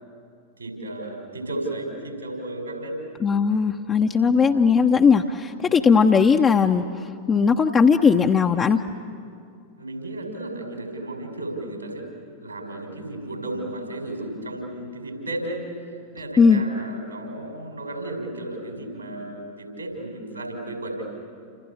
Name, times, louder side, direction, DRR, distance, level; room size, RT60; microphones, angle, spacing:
voice 1, 0.6-3.0 4.1-4.3 5.6-5.9 9.8-12.1 12.4-15.7 16.1-21.0, right 1 dB, 80° right, 2 dB, 6.1 m, -34 dB
voice 2, 3.2-6.8 7.3-8.8 16.4-16.6, left 5 dB, 20° left, 2 dB, 0.9 m, -18 dB
30.0 x 27.0 x 7.3 m, 2.4 s
figure-of-eight pair, 90°, 0 cm